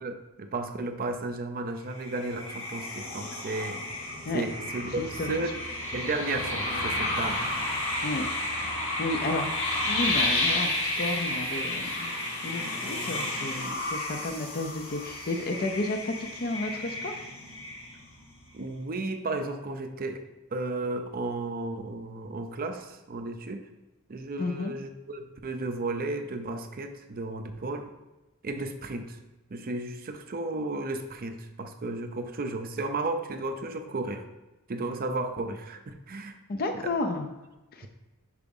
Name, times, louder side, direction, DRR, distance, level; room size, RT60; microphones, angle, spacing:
voice 1, 0.0-5.5 5.9-7.4 18.5-20.2 20.5-23.7 24.1-27.9 28.4-29.2 29.5-34.2 34.7-36.4 36.8-36.9, right 2 dB, 40° right, 7 dB, 0.5 m, -34 dB
sound 1, 1.9-18.2, left 2 dB, 65° left, 1.9 m, -31 dB
voice 2, 5.0-5.5 8.0-8.3 9.0-12.1 12.4-17.2 24.4-24.7 36.5-37.3 37.7-37.9, left 2 dB, 40° left, 5 dB, 0.5 m, -32 dB
4.8 x 4.8 x 5.4 m, 1.1 s
head